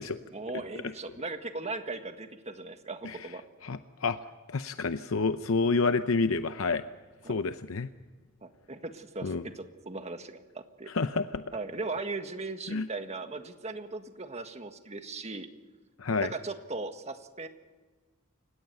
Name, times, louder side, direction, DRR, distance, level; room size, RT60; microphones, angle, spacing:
voice 1, 0.3-3.4 7.2-7.4 8.4-10.9 11.5-15.5 16.2-17.5, right 3 dB, 35° right, 7 dB, 1.7 m, -38 dB
voice 2, 3.6-4.2 4.5-6.8 7.3-7.9 9.2-9.4 10.9-11.4 12.7-12.9 16.0-16.3, left 4 dB, 80° left, 10 dB, 0.7 m, -28 dB
29.0 x 17.5 x 6.9 m, 1.3 s
head